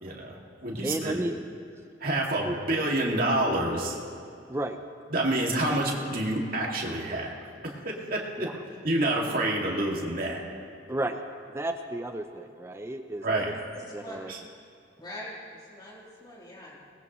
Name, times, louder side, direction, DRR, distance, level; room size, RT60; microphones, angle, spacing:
voice 1, 0.0-1.3 2.0-4.0 5.1-7.3 7.6-8.5 8.8-10.4 13.2-13.5 14.3-14.4, right 1 dB, 45° right, -2 dB, 2.3 m, -28 dB
voice 2, 0.8-1.4 2.4-2.5 4.5-4.8 8.4-8.5 10.9-11.2 11.5-13.5 13.9-14.3, right 1 dB, 15° right, 6 dB, 0.5 m, -33 dB
voice 3, 13.7-14.2 15.0-16.8, equal, 20° left, -6 dB, 3.4 m, -43 dB
21.5 x 19.0 x 3.1 m, 2.4 s
head